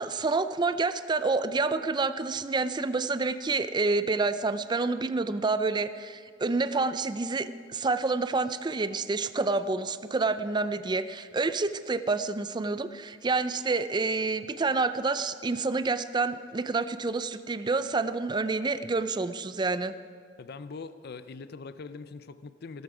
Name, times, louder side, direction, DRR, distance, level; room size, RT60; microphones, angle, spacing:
voice 1, 0.0-19.9, right 3 dB, 20° right, 12 dB, 0.4 m, -28 dB
voice 2, 20.4-22.8, left 4 dB, 55° left, 12 dB, 0.5 m, -42 dB
16.0 x 13.5 x 4.9 m, 2.1 s
head